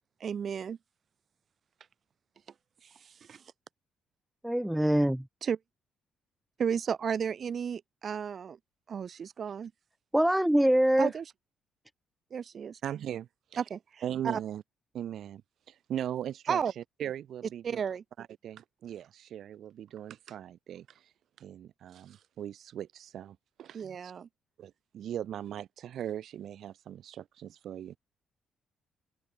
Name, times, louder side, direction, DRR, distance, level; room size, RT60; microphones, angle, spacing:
voice 1, 0.2-0.8 2.8-3.4 5.4-5.6 6.6-8.6 8.9-9.7 11.0-11.2 12.3-12.8 13.6-14.4 16.5-16.7 17.6-18.0 23.7-24.3, right 7 dB, 50° right, 3.1 m, -33 dB
voice 2, 4.4-5.2 10.1-11.1, right 1 dB, 5° right, 0.3 m, -24 dB
voice 3, 12.8-13.3 14.0-14.6 14.9-15.4 15.7-17.8 18.2-21.1 21.4-24.1 24.6-28.0, right 10 dB, 70° right, 1.4 m, -39 dB
cardioid pair, 90°, 0 cm